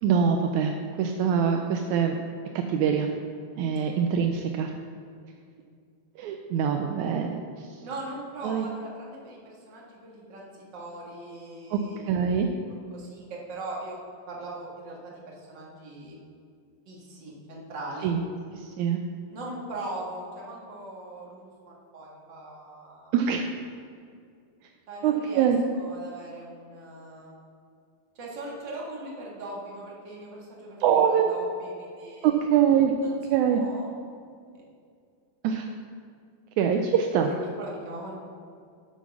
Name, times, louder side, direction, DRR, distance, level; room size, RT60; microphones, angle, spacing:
voice 1, 0.0-2.2 2.7-3.1 3.6-4.7 6.2-7.7 8.4-8.7 11.7-11.8 12.1-12.5 18.0-18.2 18.5-19.0 23.1-23.5 25.0-25.6 30.8-31.3 32.2-32.9 33.3-33.6 35.4-35.7 36.6-37.4, right 8 dB, 85° right, 4 dB, 1.7 m, -24 dB
voice 2, 7.8-12.6 12.9-14.0 14.3-16.2 16.9-18.1 19.3-23.1 24.9-27.3 28.2-32.3 33.0-33.1 33.5-33.9 37.1-38.1, right 2 dB, 40° right, -3 dB, 2.0 m, -40 dB
9.1 x 8.3 x 6.0 m, 2.3 s
omnidirectional pair, 4.0 m